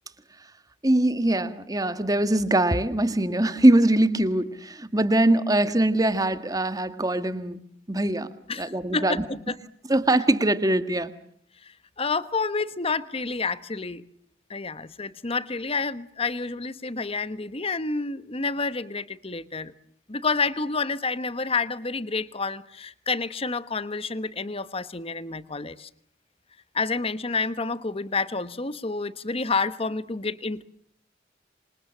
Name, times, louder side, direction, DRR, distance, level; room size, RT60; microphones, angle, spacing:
voice 1, 0.8-7.6 7.9-8.3 8.6-9.2 9.9-11.1, right 1 dB, 20° right, 11 dB, 1.6 m, -22 dB
voice 2, 8.5-9.5 11.6-14.0 14.5-19.7 20.1-25.9 26.7-30.6, left 4 dB, 35° left, 14 dB, 1.2 m, -29 dB
27.0 x 26.5 x 7.4 m, 0.66 s
head